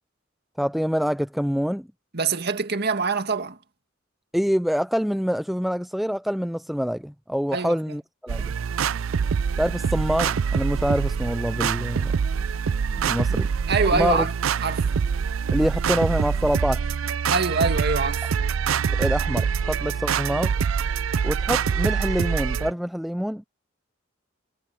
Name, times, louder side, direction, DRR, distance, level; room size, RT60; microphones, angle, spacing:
voice 1, 0.6-1.9 4.3-8.5 9.6-12.1 13.0-13.5 13.8-14.3 15.5-16.8 19.0-20.5 21.2-23.4, equal, ahead, 0.4 m, -26 dB
voice 2, 2.1-3.6 7.5-8.0 13.3-14.3 14.6-14.9 17.3-18.3, right 4 dB, 55° right, 2.0 m, -25 dB
sound 1, 8.3-22.7, right 6 dB, 90° right, 0.4 m, -25 dB
head